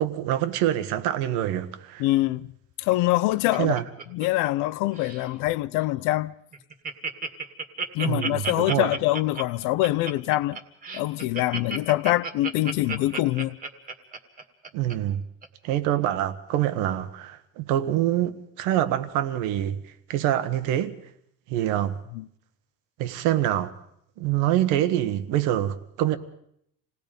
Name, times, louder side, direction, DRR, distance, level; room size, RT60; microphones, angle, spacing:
voice 1, 0.0-2.0 3.6-3.8 8.0-8.9 14.7-15.2 15.6-19.8 20.1-20.9 21.5-22.0 23.0-23.7 24.2-26.2, right 12 dB, 85° right, 1.5 m, -25 dB
voice 2, 2.0-2.5 2.8-3.8 4.1-6.3 7.9-10.6 10.9-13.6 22.1-22.3, left 17 dB, 80° left, 0.8 m, -24 dB
Laughter, 2.9-4.7 4.9-5.3 5.8-5.9 6.2-6.3 6.5-14.9 15.4-15.5, right 4 dB, 25° right, 1.9 m, -33 dB
27.5 x 19.0 x 5.3 m
cardioid pair, 170°, 30 cm